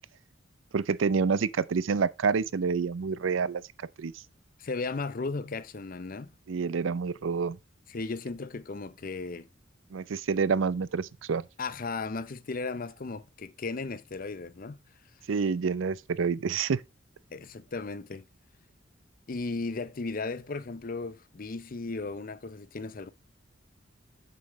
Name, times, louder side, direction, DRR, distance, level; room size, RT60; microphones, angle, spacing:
voice 1, 0.7-3.6 4.0-4.1 6.5-7.6 9.9-11.4 15.3-16.8, right 5 dB, 85° right, 0.5 m, -28 dB
voice 2, 4.6-6.3 7.9-9.5 11.6-14.8 17.3-18.3 19.3-23.1, left 3 dB, 45° left, 0.6 m, -35 dB
8.9 x 6.9 x 3.1 m
head